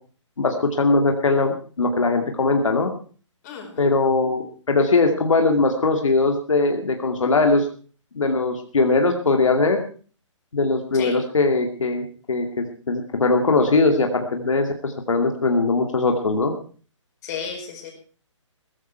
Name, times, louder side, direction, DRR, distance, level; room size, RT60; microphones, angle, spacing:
voice 1, 0.4-2.9 3.8-7.7 8.1-9.8 10.5-16.5, left 3 dB, 80° left, 4 dB, 2.5 m, -20 dB
voice 2, 3.4-3.8 10.9-11.2 17.2-17.9, left 6 dB, 30° left, 2 dB, 5.0 m, -33 dB
16.5 x 14.5 x 4.6 m, 0.40 s
hypercardioid pair, 150°, 16 cm